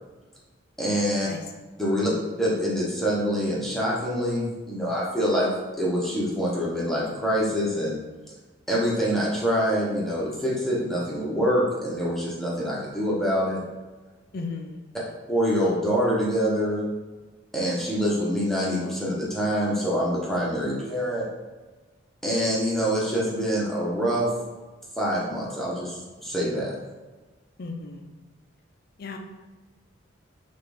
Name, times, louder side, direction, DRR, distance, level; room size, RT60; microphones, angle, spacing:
voice 1, 0.8-1.3 1.8-2.1 2.4-5.5 5.8-8.0 8.7-13.6 15.3-16.8 17.5-21.2 22.2-24.3 25.0-26.7, equal, ahead, -6 dB, 1.0 m, -25 dB
voice 2, 14.3-14.8 27.6-28.1 29.0-29.2, left 4 dB, 50° left, 4 dB, 0.5 m, -35 dB
5.7 x 2.5 x 3.4 m, 1.3 s
head